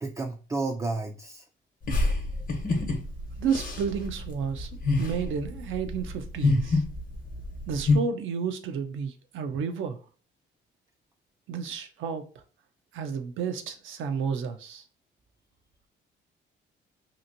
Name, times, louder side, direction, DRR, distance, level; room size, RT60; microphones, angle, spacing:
voice 1, 0.0-1.4, right 3 dB, 15° right, 0.3 m, -31 dB
sound 1, 1.9-8.0, left 3 dB, 45° left, 0.9 m, -27 dB
voice 2, 3.4-4.7 5.0-6.8 7.7-10.0 11.5-12.3 12.9-14.8, right 6 dB, 80° right, 0.5 m, -31 dB
2.9 x 2.5 x 2.5 m
cardioid pair, 90°, 20 cm